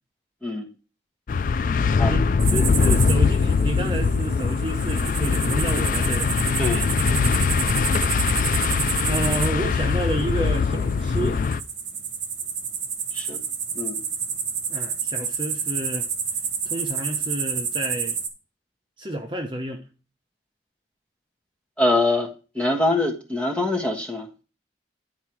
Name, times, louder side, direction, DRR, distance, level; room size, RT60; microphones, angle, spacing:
sound 1, 1.3-11.6, left 5 dB, 45° left, 0.3 m, -22 dB
voice 1, 2.0-6.3 7.9-11.5 14.7-16.1 16.6-18.2 19.0-19.8, right 1 dB, 25° right, 0.9 m, -30 dB
sound 2, 2.4-18.3, right 6 dB, 85° right, 1.5 m, -30 dB
voice 2, 6.6-6.9 13.1-13.4 13.7-14.0 21.8-22.3 22.5-24.3, left 2 dB, 5° left, 1.5 m, -24 dB
10.5 x 4.7 x 4.6 m
head